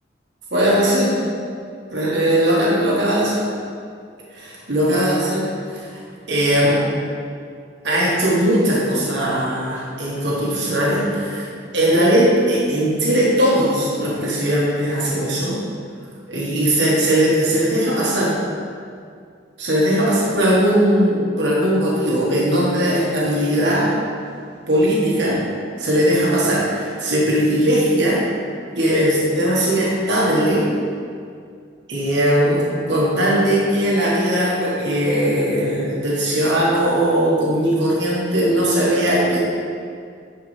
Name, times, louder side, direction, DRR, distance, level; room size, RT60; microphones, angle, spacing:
voice 1, 0.5-1.1 1.9-3.4 4.3-5.9 6.3-6.9 7.8-15.5 16.3-18.3 19.6-23.9 24.7-25.4 25.8-28.2 28.8-30.7 31.9-39.4, equal, 75° right, -5 dB, 1.4 m, -19 dB
10.5 x 4.7 x 3.3 m, 2.3 s
head